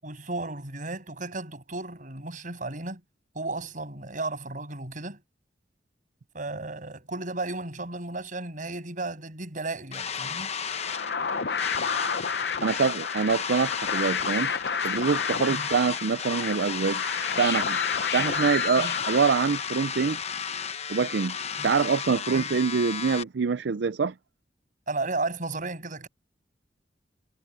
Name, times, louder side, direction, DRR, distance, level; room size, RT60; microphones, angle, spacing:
voice 1, 0.0-3.0 3.4-5.2 6.3-10.5 15.5-15.7 18.8-18.9 21.6-21.7 22.3-22.6 24.9-26.1, right 2 dB, 50° right, 7.2 m, -34 dB
sound 1, 9.9-23.2, left 7 dB, 40° left, 0.9 m, -33 dB
sound 2, 10.5-19.9, left 6 dB, 65° left, 0.8 m, -31 dB
voice 2, 12.6-14.5 14.8-17.0 17.4-17.8 18.1-20.2 20.9-21.4 21.6-24.1, right 5 dB, 75° right, 0.5 m, -25 dB
head